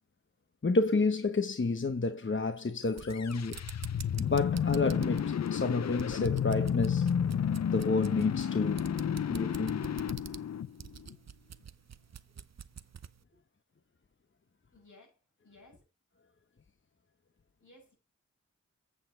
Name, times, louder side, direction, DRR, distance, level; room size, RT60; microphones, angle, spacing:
voice 1, 0.6-3.6 4.2-7.1 7.7-8.9 9.3-9.8, left 3 dB, 40° left, 1.0 m, -30 dB
sound 1, 2.8-13.2, right 7 dB, 60° right, 0.7 m, -47 dB
sound 2, 3.0-11.2, left 8 dB, 65° left, 0.5 m, -31 dB
voice 2, 14.7-15.8 17.6-17.9, left 2 dB, 80° left, 6.3 m, -59 dB
8.4 x 7.0 x 3.9 m
cardioid pair, 45°, 30 cm